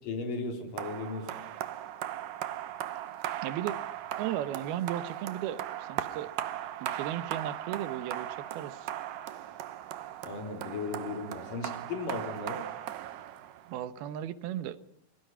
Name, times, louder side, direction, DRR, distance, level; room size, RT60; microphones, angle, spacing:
voice 1, 0.0-1.4 10.2-12.7, left 3 dB, 65° left, 5 dB, 4.9 m, -36 dB
sound 1, 0.8-13.8, right 12 dB, 70° right, 2.5 m, -38 dB
voice 2, 3.4-3.8 4.2-6.3 6.8-8.9 13.7-14.8, right 11 dB, 90° right, 13 dB, 3.0 m, -35 dB
27.0 x 22.5 x 5.6 m, 0.66 s
omnidirectional pair, 4.3 m